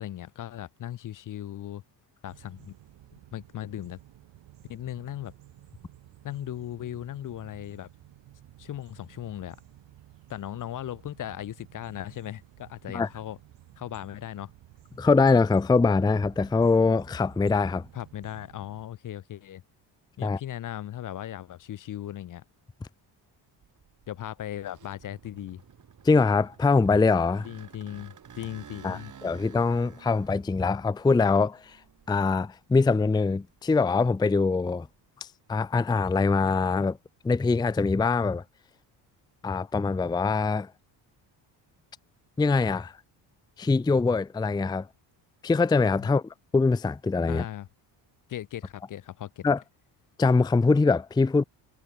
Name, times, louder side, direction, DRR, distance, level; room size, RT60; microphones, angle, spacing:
voice 1, 0.0-1.8 2.2-2.7 3.3-4.0 4.7-5.3 6.2-7.9 8.6-9.6 10.3-13.4 13.8-14.5 17.9-19.6 20.2-22.4 24.1-25.6 27.4-29.1 46.0-46.1 47.3-47.7 48.3-49.5, left 12 dB, 45° left, 0.7 m, -37 dB
sound 1, 2.3-18.9, right 14 dB, 75° right, 6.7 m, -53 dB
voice 2, 15.0-17.9 20.2-20.4 26.0-27.5 28.8-31.8 32.1-34.9 35.2-37.0 37.2-38.4 39.4-40.7 42.4-43.0 43.6-44.9 45.4-47.4 49.4-49.6 50.2-51.4, left 4 dB, 10° left, 0.5 m, -23 dB
sound 2, 23.6-32.6 33.1-35.0, right 8 dB, 40° right, 3.9 m, -52 dB
cardioid pair, 115°, 44 cm